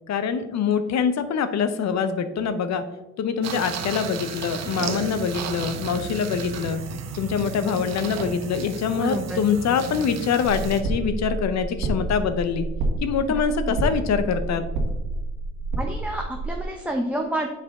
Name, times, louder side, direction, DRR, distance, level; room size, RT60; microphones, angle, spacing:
voice 1, 0.1-2.8 3.2-6.8 7.2-12.7 13.0-14.6, left 6 dB, 60° left, 10 dB, 0.7 m, -24 dB
sound 1, 3.4-10.8, right 6 dB, 60° right, 0.7 m, -33 dB
voice 2, 9.0-9.4 13.3-13.4 15.8-17.5, right 1 dB, 5° right, 2 dB, 0.6 m, -29 dB
sound 2, 10.4-16.6, right 2 dB, 85° right, 1.5 m, -28 dB
6.7 x 5.0 x 3.6 m, 1.0 s
cardioid pair, 90°, 30 cm